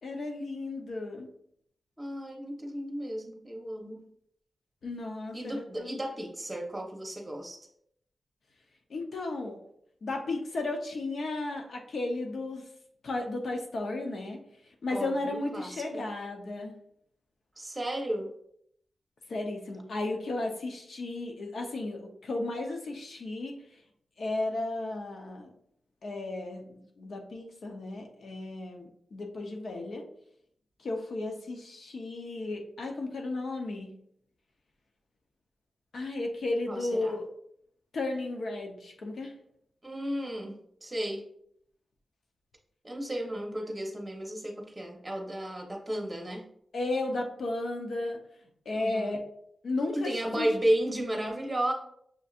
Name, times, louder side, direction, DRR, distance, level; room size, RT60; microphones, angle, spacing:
voice 1, 0.0-1.3 4.8-6.0 8.9-9.6 10.0-12.7 13.0-14.4 14.8-16.7 19.3-23.5 24.2-25.5 26.0-30.1 30.8-33.9 35.9-37.2 37.9-39.3 46.7-48.2 48.7-49.2 49.6-50.5, left 2 dB, 70° left, 2 dB, 0.8 m, -34 dB
voice 2, 2.0-4.1 5.3-7.6 14.9-16.0 17.6-18.3 36.7-37.1 39.8-41.3 42.8-46.5 48.7-49.1 49.9-51.7, right 1 dB, 15° right, 1 dB, 1.0 m, -33 dB
6.5 x 2.6 x 2.5 m, 0.70 s
cardioid pair, 80°, 0 cm